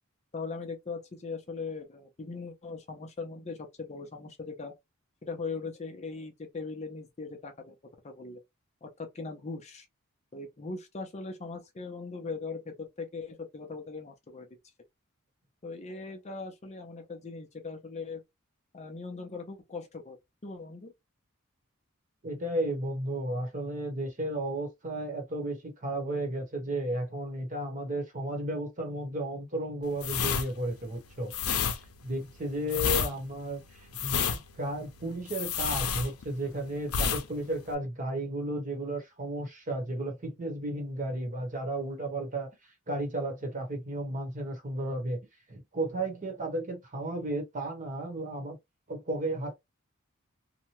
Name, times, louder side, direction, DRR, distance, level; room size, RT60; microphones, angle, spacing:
voice 1, 0.3-4.7 5.2-7.7 8.0-8.4 8.8-9.9 10.3-14.5 15.6-18.2 18.7-20.2 20.4-20.9, left 4 dB, 30° left, 0.5 m, -40 dB
voice 2, 22.2-31.3 32.0-45.2 45.5-48.6 48.9-49.5, right 1 dB, 35° right, 1.0 m, -33 dB
sound 1, 30.0-36.5 36.9-37.3 37.5-37.7, left 7 dB, 80° left, 0.5 m, -30 dB
2.8 x 2.1 x 2.9 m
head